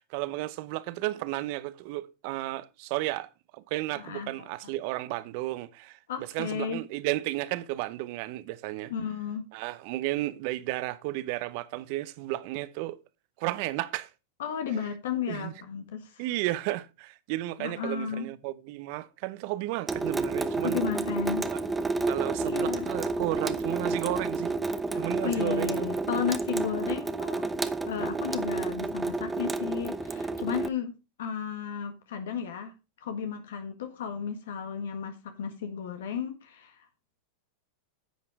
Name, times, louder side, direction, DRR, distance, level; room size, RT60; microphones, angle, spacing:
voice 1, 0.0-6.0 6.3-8.9 9.5-13.0 13.4-14.1 15.3-15.5 16.2-20.8 21.5-21.6 22.0-24.5 24.9-26.2, right 17 dB, 55° right, 0.8 m, -33 dB
voice 2, 3.9-4.5 6.1-6.8 8.9-9.4 14.4-16.2 17.6-18.3 20.6-21.4 22.4-22.9 24.9-27.5 27.9-30.9 31.2-32.7 33.0-36.9, left 7 dB, 75° left, 1.6 m, -34 dB
Water tap faucet / Sink (filling or washing) / Drip, 19.9-30.7, right 3 dB, 10° right, 0.8 m, -30 dB
10.0 x 7.5 x 3.6 m
hypercardioid pair, 105°, 0 cm